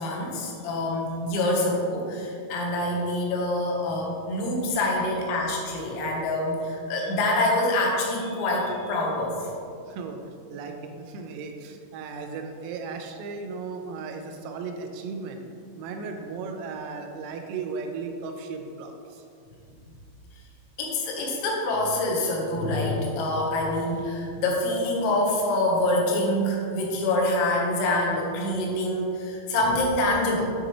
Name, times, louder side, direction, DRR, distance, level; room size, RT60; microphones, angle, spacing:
voice 1, 0.0-9.5 20.8-30.5, left 1 dB, 80° left, -1 dB, 3.7 m, -26 dB
voice 2, 9.9-10.2 10.5-15.4 15.7-19.3, right 4 dB, 85° right, 4 dB, 3.4 m, -36 dB
9.3 x 6.4 x 3.1 m, 2.4 s
omnidirectional pair, 6.0 m